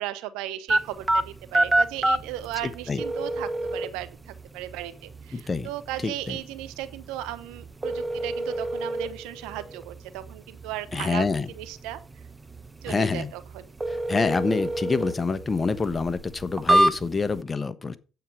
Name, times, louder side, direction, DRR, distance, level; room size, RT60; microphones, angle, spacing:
voice 1, 0.0-11.2 11.5-12.0 12.8-13.6, right 13 dB, 80° right, 1.1 m, -36 dB
sound 1, 0.7-17.4, right 1 dB, 20° right, 1.0 m, -29 dB
voice 2, 2.6-3.0 5.3-5.7 6.0-6.4 10.9-11.5 12.9-13.3 13.9-18.0, left 4 dB, 30° left, 1.2 m, -27 dB
9.4 x 8.4 x 4.9 m
hypercardioid pair, 60°, 0 cm